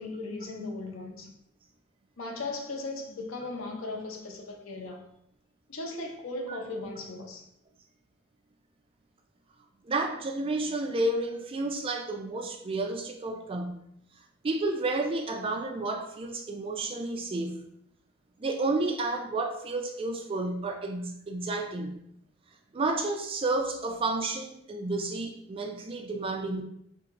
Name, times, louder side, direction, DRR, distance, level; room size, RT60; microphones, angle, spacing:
voice 1, 0.0-1.3 2.2-5.0 5.7-7.4, left 2 dB, 85° left, 0.6 m, -37 dB
voice 2, 9.8-13.8 14.4-17.6 18.4-22.0 22.7-26.6, right 2 dB, 30° right, 0.3 m, -31 dB
2.9 x 2.7 x 3.6 m
head